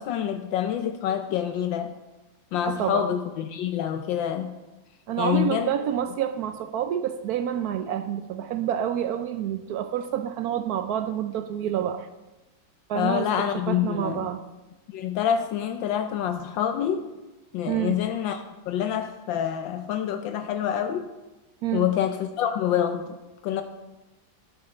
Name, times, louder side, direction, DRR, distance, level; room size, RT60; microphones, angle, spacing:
voice 1, 0.0-1.9 2.5-4.6 5.2-5.7 12.9-14.3 14.9-17.1 17.5-21.0 21.7-23.2 23.4-23.6, left 9 dB, 80° left, 7 dB, 1.3 m, -27 dB
voice 2, 2.7-3.1 5.1-12.1 12.9-13.3 13.7-14.4 17.7-18.0 21.6-21.9, right 10 dB, 75° right, 10 dB, 0.9 m, -28 dB
12.5 x 7.4 x 4.4 m, 1.1 s
omnidirectional pair, 2.1 m